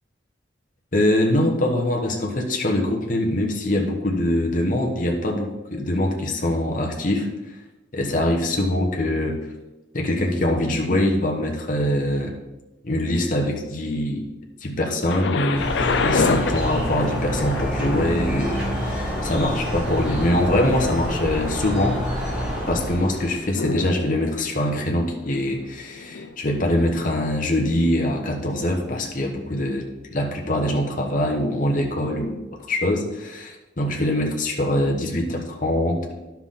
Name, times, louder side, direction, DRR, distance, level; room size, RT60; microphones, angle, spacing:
voice 1, 0.9-7.6 7.9-9.5 9.9-12.3 12.8-14.3 14.6-22.0 22.7-29.8 30.1-36.1, left 1 dB, 45° left, 0 dB, 1.2 m, -23 dB
Thunder, 15.1-26.9 27.7-27.8, left 4 dB, 65° left, 0.5 m, -30 dB
sound 1, 15.5-23.6, equal, 5° right, 3.2 m, -27 dB
10.5 x 5.9 x 3.8 m, 1.0 s
head